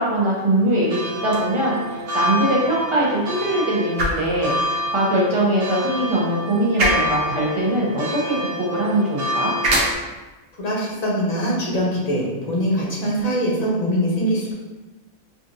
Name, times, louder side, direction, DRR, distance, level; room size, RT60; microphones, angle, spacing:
voice 1, 0.0-9.5, right 1 dB, 55° right, -4 dB, 0.3 m, -21 dB
sound 1, 0.8-9.9, equal, 90° right, 1.0 m, -28 dB
sound 2, 1.2-13.2, right 1 dB, 70° right, 1.0 m, -30 dB
voice 2, 10.6-14.5, equal, 40° left, -4 dB, 0.8 m, -22 dB
3.5 x 2.5 x 2.5 m, 1.2 s
omnidirectional pair, 1.2 m